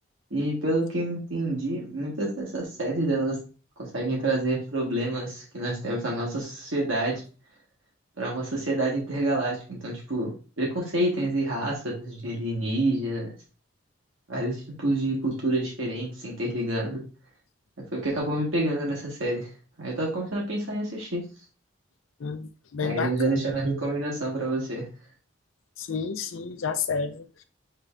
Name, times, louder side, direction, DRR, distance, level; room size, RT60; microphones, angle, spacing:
voice 1, 0.3-3.4 3.8-7.2 8.2-13.3 14.3-17.0 17.8-19.5 19.8-21.2 22.8-24.9, right 1 dB, 75° right, 1.5 m, -28 dB
voice 2, 22.2-23.4 25.8-27.4, left 5 dB, 75° left, 0.5 m, -31 dB
6.4 x 3.4 x 2.4 m
head